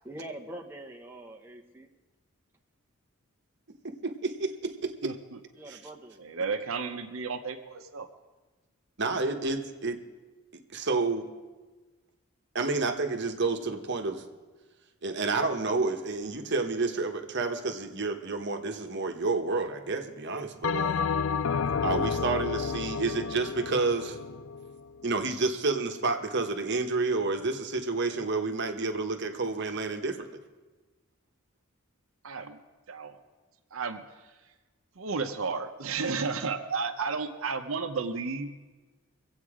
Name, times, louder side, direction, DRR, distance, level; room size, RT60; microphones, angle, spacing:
voice 1, 0.0-1.9 5.5-6.2, right 1 dB, 10° right, 1 dB, 1.0 m, -43 dB
voice 2, 4.0-5.1 5.7-5.8 9.0-10.0 10.7-11.3 12.5-14.2 15.0-21.0 21.8-24.2 25.0-30.4, right 3 dB, 50° right, 5 dB, 1.1 m, -30 dB
voice 3, 5.0-5.4 6.2-8.1 32.2-32.6 32.9-33.1 33.7-34.3 35.0-38.6, right 4 dB, 70° right, 7 dB, 0.8 m, -33 dB
Bell, 20.6-25.2, left 6 dB, 60° left, 0.4 m, -31 dB
23.0 x 8.2 x 4.9 m, 1.3 s
head